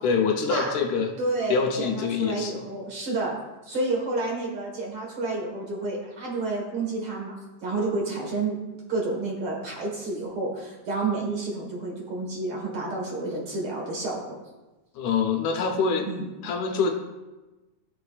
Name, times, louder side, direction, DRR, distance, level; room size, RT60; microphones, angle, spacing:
voice 1, 0.0-1.1 1.5-2.6 15.0-16.1 16.4-16.9, left 5 dB, 75° left, 2 dB, 2.3 m, -25 dB
voice 2, 1.2-3.4 3.6-8.6 8.9-14.4 16.1-16.3, right 2 dB, 50° right, -1 dB, 2.2 m, -30 dB
15.5 x 6.8 x 2.4 m, 1.1 s
omnidirectional pair, 3.5 m